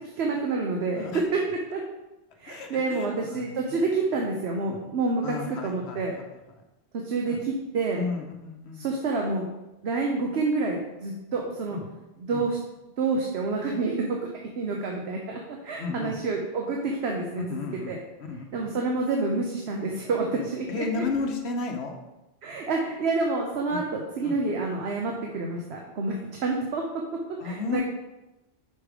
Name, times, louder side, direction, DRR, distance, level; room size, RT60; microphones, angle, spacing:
voice 1, 0.2-1.4 1.7-1.8 2.4-6.2 6.9-8.0 8.8-9.5 9.8-11.8 12.2-12.6 13.0-14.2 14.6-18.0 18.3-20.8 22.4-26.8 27.4-27.9, right 3 dB, 85° right, 0 dB, 1.1 m, -28 dB
voice 2, 2.5-3.8 4.7-4.8 5.2-6.1 7.3-7.4 7.9-8.9 11.7-11.8 12.3-12.4 15.8-16.2 17.5-17.9 18.2-18.4 20.3-21.9 23.7-23.8 24.2-24.4 27.4-27.9, left 4 dB, 85° left, 3 dB, 1.1 m, -33 dB
5.6 x 4.9 x 5.0 m, 0.99 s
omnidirectional pair, 1.1 m